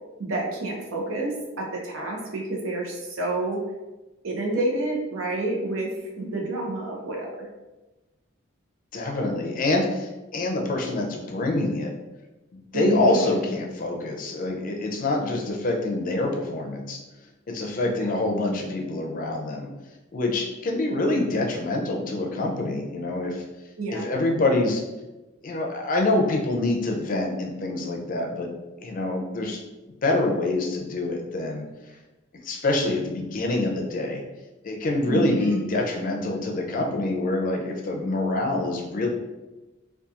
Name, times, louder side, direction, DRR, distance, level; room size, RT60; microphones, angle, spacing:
voice 1, 0.2-3.6 4.2-5.9 6.2-7.3 12.7-13.4 17.9-18.1 23.8-24.0 35.1-35.7, right 2 dB, 85° right, -1 dB, 0.7 m, -29 dB
voice 2, 8.9-11.9 12.7-17.0 17.5-19.7 20.1-23.4 23.9-24.8 25.4-28.5 28.8-29.6 30.0-31.7 32.4-34.2 34.6-39.1, left 2 dB, 45° left, 1 dB, 0.4 m, -26 dB
2.8 x 2.3 x 2.4 m, 1.1 s
head